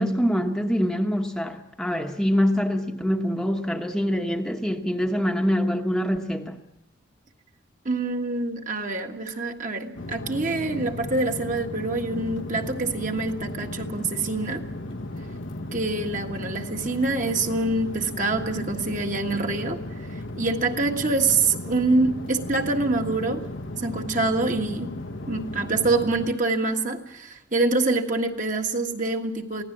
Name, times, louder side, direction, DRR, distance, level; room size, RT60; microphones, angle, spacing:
voice 1, 0.0-6.6, equal, 5° left, 2 dB, 1.0 m, -25 dB
voice 2, 7.8-14.6 15.7-19.8 20.4-23.4 23.8-24.9 25.3-29.6, right 3 dB, 40° right, 3 dB, 1.7 m, -25 dB
sound 1, 10.0-26.3, left 1 dB, 80° left, 1.1 m, -35 dB
23.0 x 16.5 x 7.4 m, 0.83 s
head